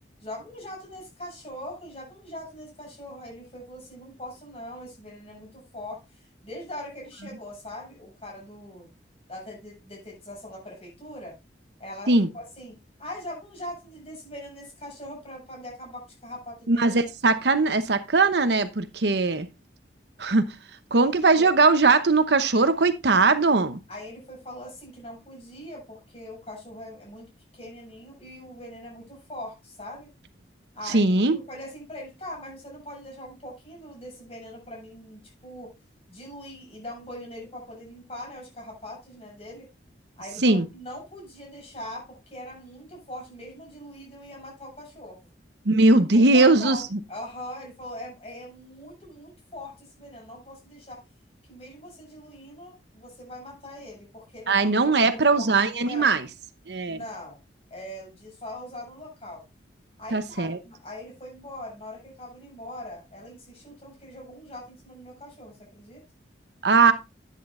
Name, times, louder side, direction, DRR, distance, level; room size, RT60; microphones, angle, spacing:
voice 1, 0.2-8.9 9.3-11.3 11.8-16.9 21.3-21.5 23.9-27.3 27.5-30.1 30.7-35.7 36.1-39.7 40.2-45.2 46.1-51.0 51.5-55.5 55.8-56.1 56.9-57.4 57.7-59.4 60.0-66.0, left 1 dB, 35° left, 7.6 m, -41 dB
voice 2, 16.7-19.5 20.2-20.4 20.9-23.8 30.9-31.4 40.4-40.6 45.7-46.8 54.5-56.3 56.7-57.0 60.1-60.6 66.6-66.9, right 3 dB, 65° right, 0.9 m, -20 dB
11.0 x 10.0 x 2.5 m
head